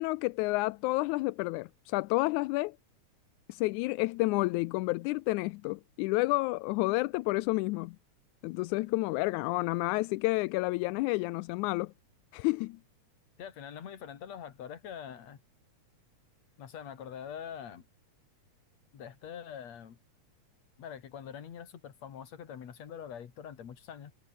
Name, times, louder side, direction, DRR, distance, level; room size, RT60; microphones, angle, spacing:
voice 1, 0.0-2.8 3.5-8.0 8.4-11.9 12.3-12.8, left 22 dB, 90° left, 2.0 m, -30 dB
voice 2, 13.4-15.4 16.6-17.8 18.9-20.0 20.8-24.1, left 8 dB, 65° left, 3.3 m, -44 dB
omnidirectional pair, 3.4 m